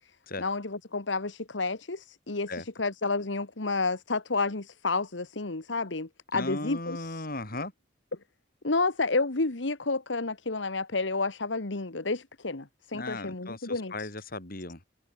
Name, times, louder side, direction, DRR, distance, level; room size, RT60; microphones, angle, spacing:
voice 1, 0.4-7.3 8.6-14.1, left 3 dB, 80° left, 1.6 m, -30 dB
voice 2, 6.3-7.7 12.9-14.8, left 2 dB, 55° left, 6.6 m, -36 dB
head